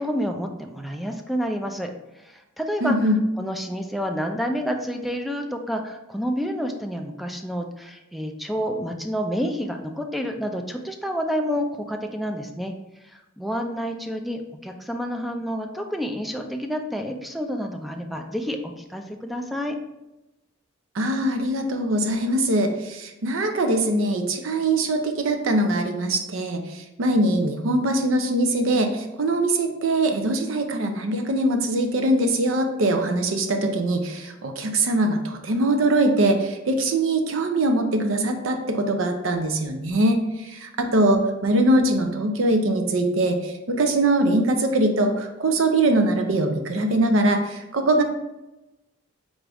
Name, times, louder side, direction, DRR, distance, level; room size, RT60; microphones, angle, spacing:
voice 1, 0.0-1.9 2.2-3.0 3.4-12.7 13.4-19.8, equal, ahead, 3 dB, 0.3 m, -29 dB
voice 2, 2.8-3.2 20.9-48.0, right 1 dB, 75° right, 5 dB, 0.6 m, -22 dB
3.9 x 3.5 x 3.4 m, 0.98 s
head